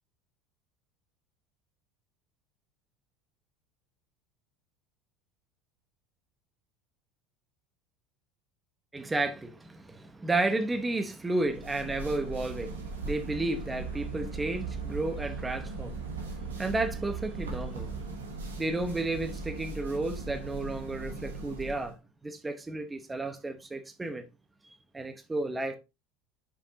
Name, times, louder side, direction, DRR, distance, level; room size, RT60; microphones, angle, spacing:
voice 1, 8.9-22.0 22.2-24.3 24.9-25.8, right 2 dB, 15° right, 0.9 m, -32 dB
sound 1, 11.4-21.9, right 4 dB, 90° right, 1.4 m, -38 dB
7.0 x 5.2 x 2.7 m
hypercardioid pair, 75°, 0 cm